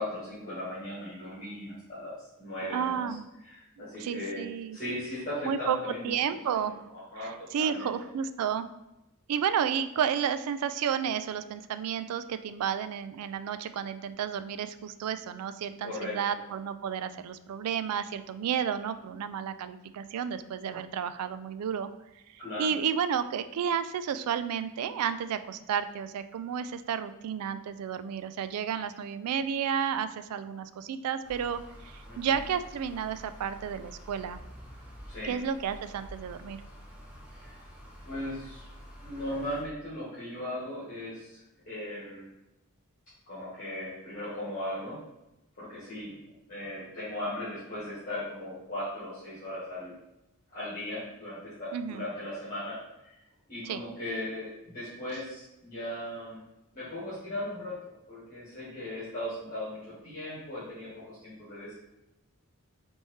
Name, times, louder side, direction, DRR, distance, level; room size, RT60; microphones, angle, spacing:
voice 1, 0.0-3.1 3.4-4.4 4.7-6.6 6.9-8.1 15.8-16.3 22.4-22.8 32.1-32.3 35.1-35.3 37.3-37.6 38.0-38.7 39.0-42.3 43.3-45.0 45.6-46.2 46.5-49.9 50.5-53.1 53.5-56.4 56.7-61.7, left 1 dB, 40° left, -10 dB, 1.5 m, -38 dB
voice 2, 2.7-3.3 4.0-4.8 5.4-6.9 7.2-8.7 9.3-21.9 22.6-34.4 35.2-36.6 51.7-52.0 53.7-53.8, right 8 dB, 85° right, 12 dB, 0.3 m, -32 dB
sound 1, 31.2-39.6, equal, 5° right, 0.8 m, -48 dB
4.0 x 3.5 x 3.1 m, 0.94 s
head